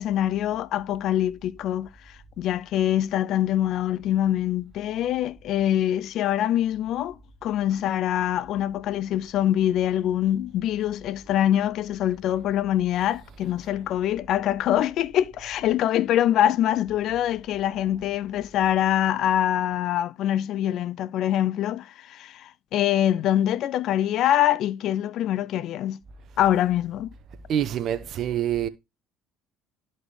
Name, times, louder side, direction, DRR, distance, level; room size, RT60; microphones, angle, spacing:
voice 1, 0.0-7.2 7.4-26.0 26.4-27.1, left 11 dB, 60° left, 0.4 m, -24 dB
voice 2, 27.5-28.7, right 10 dB, 55° right, 0.7 m, -26 dB
11.5 x 4.1 x 3.2 m
hypercardioid pair, 70°, 0 cm